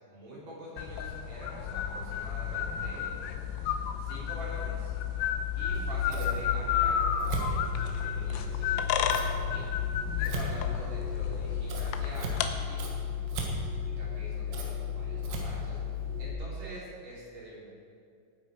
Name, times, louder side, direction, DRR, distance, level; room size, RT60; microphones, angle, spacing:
voice 1, 0.1-3.1 4.0-4.9 5.5-9.7 10.2-12.9 14.0-15.8 16.2-17.6, equal, 35° right, -6 dB, 4.1 m, -45 dB
sound 1, 0.8-12.5, left 9 dB, 85° left, 3.3 m, -32 dB
Scissors, 5.6-16.3, left 4 dB, 70° right, 3.8 m, -34 dB
19.0 x 9.0 x 4.5 m, 2.3 s
omnidirectional pair, 6.0 m